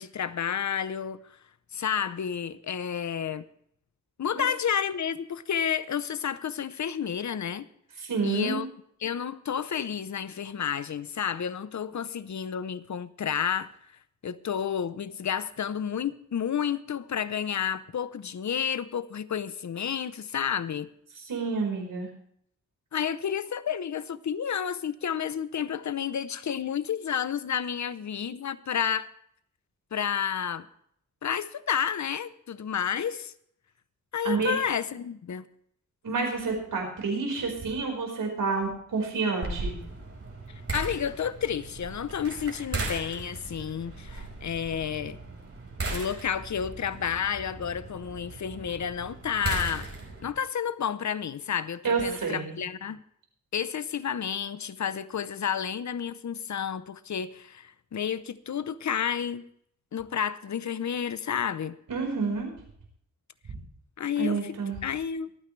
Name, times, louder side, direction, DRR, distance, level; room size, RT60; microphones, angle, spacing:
voice 1, 0.0-1.4 1.7-3.4 4.2-7.7 8.2-8.7 9.0-13.7 14.2-20.9 22.9-29.1 29.9-30.7 31.2-33.3 34.1-35.4 40.5-45.2 45.9-49.9 50.2-53.0 53.5-59.4 59.9-61.8 64.0-64.5 64.8-65.3, left 8 dB, 60° left, 0.8 m, -31 dB
voice 2, 8.0-8.6 21.2-22.1 34.2-34.5 36.0-39.8 51.8-52.6 61.9-62.5 64.2-64.8, right 4 dB, 85° right, 4.8 m, -29 dB
sound 1, 39.4-50.3, right 2 dB, 50° right, 5.0 m, -37 dB
24.5 x 9.4 x 3.3 m
wide cardioid pair, 85°, 32 cm